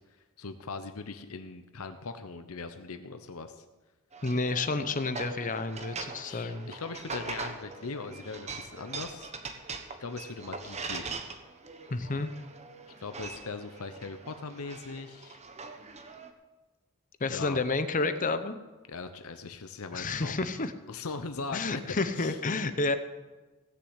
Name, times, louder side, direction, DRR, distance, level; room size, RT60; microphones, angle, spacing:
voice 1, 0.4-3.6 6.2-9.3 10.0-11.2 13.0-15.4 17.3-17.6 18.9-20.4 20.9-21.8 22.2-22.4, left 4 dB, 75° left, 8 dB, 0.8 m, -40 dB
sound 1, 4.1-16.3, right 4 dB, 30° right, 1.1 m, -42 dB
voice 2, 4.2-6.7 11.9-12.3 17.2-18.6 19.9-20.7 21.5-23.0, left 3 dB, 35° left, 11 dB, 0.7 m, -30 dB
17.0 x 6.8 x 8.0 m, 1.2 s
head